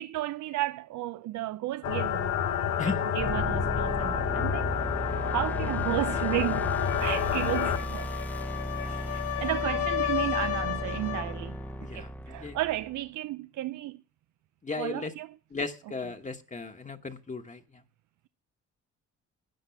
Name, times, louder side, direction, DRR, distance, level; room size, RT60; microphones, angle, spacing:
voice 1, 0.0-2.3 2.8-4.7 5.3-6.7 7.0-8.1 8.8-11.6 11.9-14.0 14.8-15.3, right 15 dB, 75° right, 0.5 m, -33 dB
sound 1, 1.8-7.8, left 8 dB, 70° left, 1.9 m, -29 dB
sound 2, 3.2-13.0, equal, 5° left, 0.7 m, -36 dB
sound 3, 6.5-11.4, left 12 dB, 85° left, 1.5 m, -33 dB
voice 2, 11.8-12.6 14.6-15.1 15.5-17.8, left 4 dB, 25° left, 1.2 m, -36 dB
13.0 x 9.0 x 5.8 m
cardioid pair, 90°, 30 cm